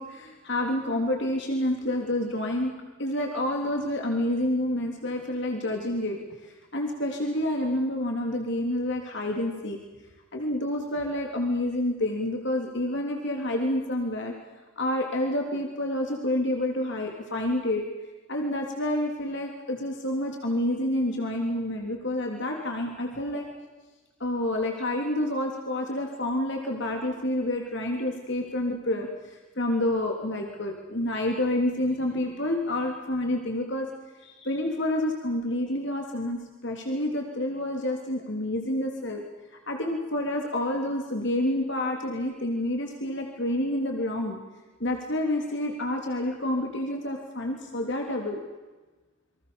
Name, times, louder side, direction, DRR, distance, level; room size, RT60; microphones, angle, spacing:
voice 1, 0.0-2.7 3.0-6.2 6.4-9.8 10.3-14.3 14.8-17.8 18.3-23.5 24.2-33.9 34.2-39.2 39.7-44.4 44.8-48.4, left 1 dB, 55° left, 2 dB, 3.4 m, -28 dB
29.5 x 24.5 x 7.1 m, 1.2 s
head